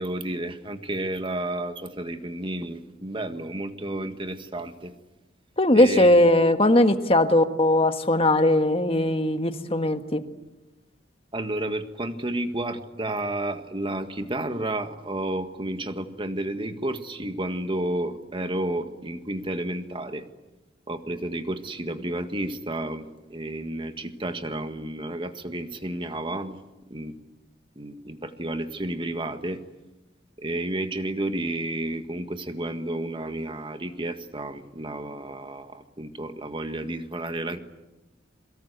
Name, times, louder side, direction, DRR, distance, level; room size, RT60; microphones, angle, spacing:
voice 1, 0.0-4.9 5.7-6.1 11.3-20.2 20.9-26.6 26.9-27.1 27.8-29.6 30.4-37.6, right 1 dB, 30° right, 8 dB, 1.8 m, -31 dB
voice 2, 5.6-10.2, left 1 dB, 30° left, 7 dB, 1.7 m, -19 dB
28.0 x 23.0 x 8.2 m, 1.1 s
head